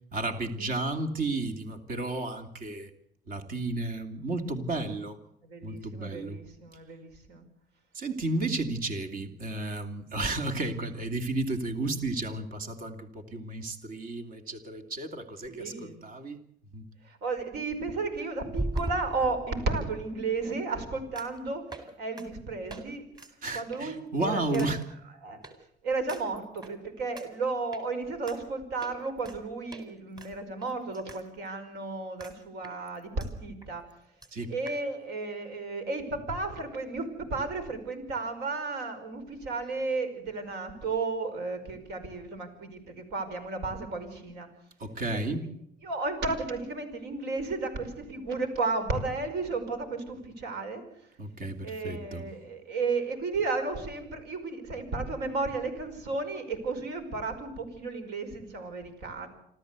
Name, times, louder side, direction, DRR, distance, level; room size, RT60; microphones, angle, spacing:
voice 1, 0.1-2.9 3.3-5.2 5.6-6.4 7.9-16.4 16.7-16.9 23.4-24.8 34.3-34.5 44.8-45.5 51.2-52.3, right 2 dB, 55° right, 7 dB, 2.7 m, -33 dB
voice 2, 5.4-7.4 15.5-16.0 17.0-23.0 23.5-24.7 25.2-25.4 25.8-33.8 34.5-44.5 45.3-45.5 45.8-50.8 51.6-59.3, right 3 dB, 80° right, 7 dB, 5.2 m, -33 dB
sound 1, 18.5-19.8 21.2-21.4 21.7-21.9 22.2-22.3 22.7-22.8 23.1-23.3 23.7-24.0 24.5-24.7 25.4-25.5 26.1-26.7 27.2-27.3 27.7-27.8 28.3-28.4 28.8-29.4 29.7-29.8 30.2-31.2 31.5-31.6 32.2-32.3 32.6-33.3 33.6-33.7 33.9-34.0 34.2-34.3 34.7-34.8, right 2 dB, 25° right, 4.1 m, -38 dB
27.0 x 13.5 x 8.2 m, 0.72 s
cardioid pair, 110°, 17 cm